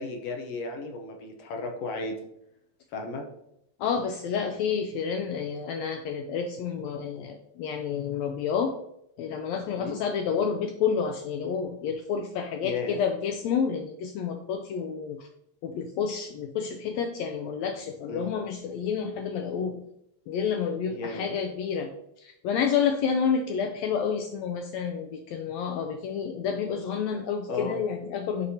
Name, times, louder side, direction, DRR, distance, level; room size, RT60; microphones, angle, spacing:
voice 1, 0.0-2.2 2.9-3.3 9.7-10.0 12.6-13.0 18.1-18.3 20.9-21.4 27.5-27.8, left 3 dB, 70° left, 3 dB, 1.6 m, -34 dB
voice 2, 3.8-8.7 9.2-15.3 15.6-19.8 20.3-21.9 22.2-28.5, left 6 dB, 90° left, 5 dB, 1.5 m, -29 dB
11.0 x 4.0 x 2.8 m, 0.77 s
omnidirectional pair, 3.7 m